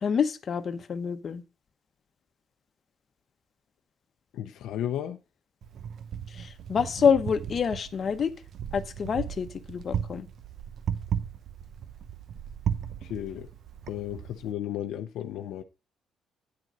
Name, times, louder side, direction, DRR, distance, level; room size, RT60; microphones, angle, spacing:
voice 1, 0.0-1.4 6.3-8.3 8.7-10.3, left 6 dB, 50° left, 0.9 m, -27 dB
voice 2, 4.3-5.2 13.0-13.5 13.9-15.6, left 11 dB, 85° left, 0.6 m, -34 dB
Wind, 5.6-14.5, right 8 dB, 65° right, 0.7 m, -36 dB
9.6 x 3.9 x 6.0 m
cardioid pair, 90°, 0 cm